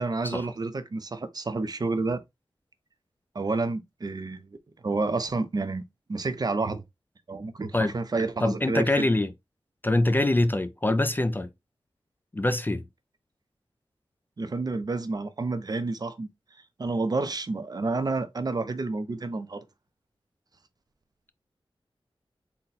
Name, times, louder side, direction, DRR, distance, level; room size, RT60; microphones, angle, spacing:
voice 1, 0.0-2.2 3.3-4.5 4.8-5.8 6.1-6.8 7.3-9.1 14.4-16.3 16.8-19.6, right 3 dB, 45° right, 0.5 m, -29 dB
voice 2, 8.4-9.3 9.8-11.5 12.3-12.8, left 2 dB, 20° left, 0.4 m, -24 dB
4.0 x 2.2 x 4.0 m
wide cardioid pair, 100°, 10 cm